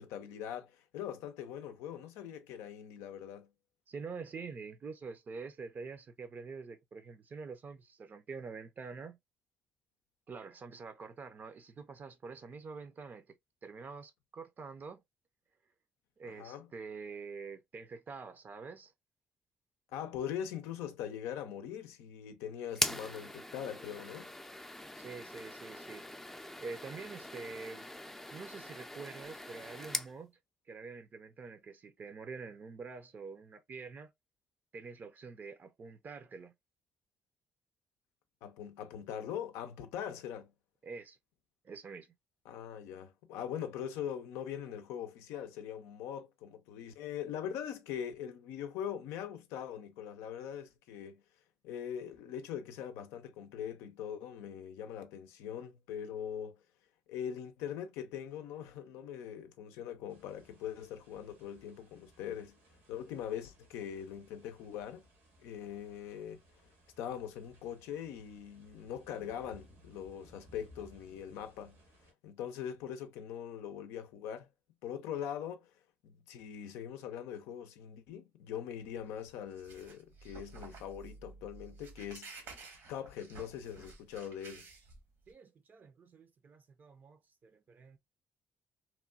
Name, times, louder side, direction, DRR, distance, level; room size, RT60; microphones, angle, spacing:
voice 1, 0.0-3.5 16.3-16.7 19.9-24.3 38.4-40.5 42.5-51.2 51.6-56.6 57.1-62.6 62.9-65.1 65.4-66.4 67.0-71.8 72.2-74.5 74.8-75.7 76.0-82.6 82.9-84.7, left 9 dB, 85° left, 0.4 m, -42 dB
voice 2, 3.9-9.2 10.3-15.0 15.7-15.8 16.2-18.9 25.0-27.9 28.3-30.4 30.6-34.1 34.7-36.5 40.8-41.2 41.6-42.2 85.3-88.0, right 4 dB, 45° right, 0.5 m, -46 dB
sound 1, 22.7-30.1, left 1 dB, 10° left, 0.4 m, -41 dB
sound 2, 60.1-72.1, equal, 90° right, 1.2 m, -62 dB
sound 3, 78.8-85.3, right 3 dB, 75° right, 1.0 m, -52 dB
3.0 x 2.2 x 2.2 m
supercardioid pair, 65°, 4 cm